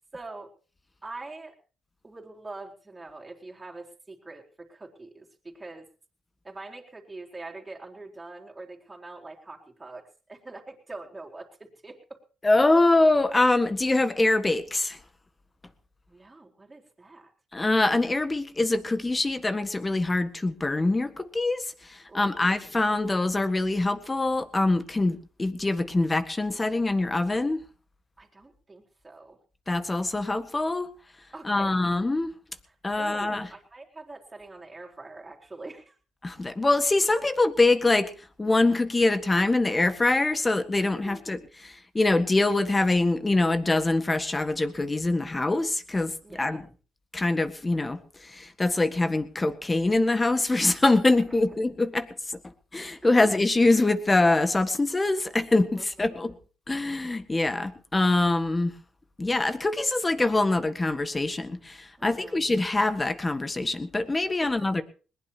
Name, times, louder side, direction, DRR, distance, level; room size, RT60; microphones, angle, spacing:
voice 1, 0.1-0.5 1.0-1.5 2.0-5.9 6.4-10.0 10.3-12.2 16.1-17.3 22.1-22.6 28.2-29.4 31.3-31.8 32.7-36.0 41.0-41.3 46.2-46.6 53.0-53.3 55.7-56.3 62.0-62.4 64.4-64.7, right 2 dB, 20° right, 0 dB, 3.9 m, -44 dB
voice 2, 12.4-15.0 17.5-21.6 22.1-27.6 29.7-30.9 31.5-32.3 32.8-33.5 36.2-38.1 38.4-41.4 41.9-46.1 46.4-46.6 47.1-48.0 48.3-52.1 52.7-56.4 56.7-58.7 59.2-64.8, left 2 dB, 20° left, 11 dB, 1.6 m, -24 dB
21.0 x 19.5 x 2.9 m, 0.36 s
cardioid pair, 90°, 0 cm